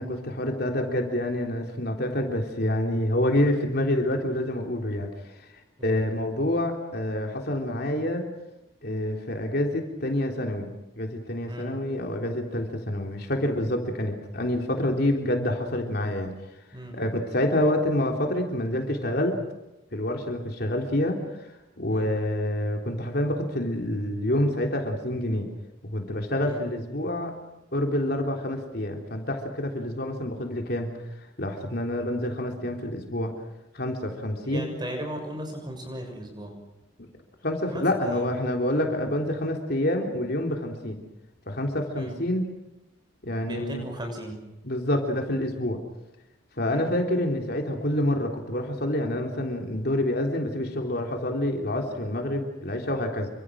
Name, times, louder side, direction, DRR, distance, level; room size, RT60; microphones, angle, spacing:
voice 1, 0.0-5.1 5.4-5.5 5.8-8.2 8.8-10.7 11.0-16.3 16.9-19.4 19.9-21.5 21.8-25.5 25.8-27.3 27.7-30.9 31.4-33.3 33.7-34.7 37.0-37.1 37.4-41.0 41.5-42.5 43.2-43.8 44.6-45.8 46.6-53.3, left 1 dB, 50° left, 2 dB, 3.5 m, -27 dB
voice 2, 34.4-36.5 37.7-38.2 41.9-42.1 43.4-44.4 46.7-46.8, equal, 20° right, 4 dB, 6.6 m, -36 dB
28.5 x 25.5 x 6.4 m, 0.95 s
head